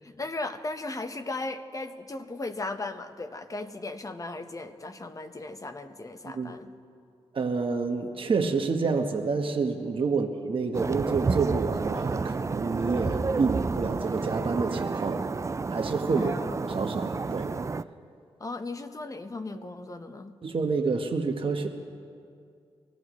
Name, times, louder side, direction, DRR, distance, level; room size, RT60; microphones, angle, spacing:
voice 1, 0.0-6.7 10.1-10.2 16.1-16.5 18.4-20.4, left 2 dB, 35° left, 8 dB, 1.1 m, -37 dB
voice 2, 7.3-15.2 15.7-16.4 16.7-17.6 20.4-21.7, right 4 dB, 55° right, 4 dB, 1.1 m, -28 dB
sound 1, 10.7-17.8, right 4 dB, 30° right, 0.4 m, -30 dB
24.0 x 15.0 x 3.1 m, 2.3 s
cardioid pair, 50°, 10 cm